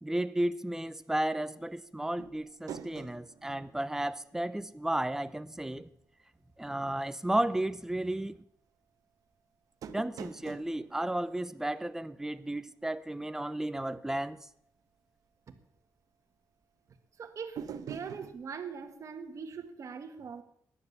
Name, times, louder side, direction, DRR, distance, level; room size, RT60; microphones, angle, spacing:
voice 1, 0.0-5.9 6.6-8.4 9.9-14.4, right 1 dB, 10° right, 0.8 m, -33 dB
sound 1, 2.2-4.8 5.1-5.2 9.8-12.3 17.6-18.4, right 8 dB, 80° right, 1.0 m, -46 dB
voice 2, 17.2-20.4, right 6 dB, 55° right, 1.7 m, -42 dB
15.0 x 10.5 x 7.1 m
cardioid pair, 110°, 6 cm